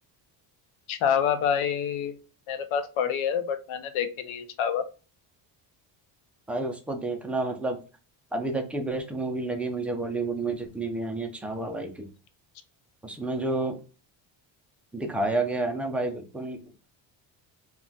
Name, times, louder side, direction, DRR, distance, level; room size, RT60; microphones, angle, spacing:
voice 1, 0.9-2.2 2.5-4.9, left 8 dB, 80° left, 9 dB, 0.7 m, -27 dB
voice 2, 6.5-7.8 8.3-12.1 13.0-13.8 14.9-16.9, right 2 dB, 5° right, 3 dB, 0.4 m, -30 dB
2.4 x 2.2 x 3.8 m, 0.34 s
cardioid pair, 105°, 48 cm